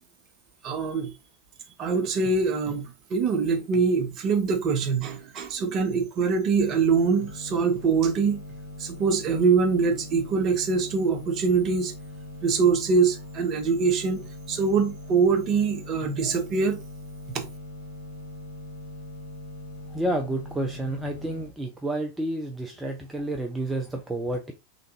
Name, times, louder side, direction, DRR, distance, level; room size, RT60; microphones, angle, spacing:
voice 1, 0.6-1.1 1.8-8.4 8.8-11.9 12.4-14.2 14.5-16.8 17.3-17.4, right 5 dB, 35° right, 0.7 m, -24 dB
sound 1, 6.6-21.5, left 1 dB, 70° left, 1.1 m, -41 dB
voice 2, 19.9-24.5, right 1 dB, 5° right, 0.4 m, -30 dB
3.3 x 2.5 x 2.9 m
figure-of-eight pair, 90°, 0 cm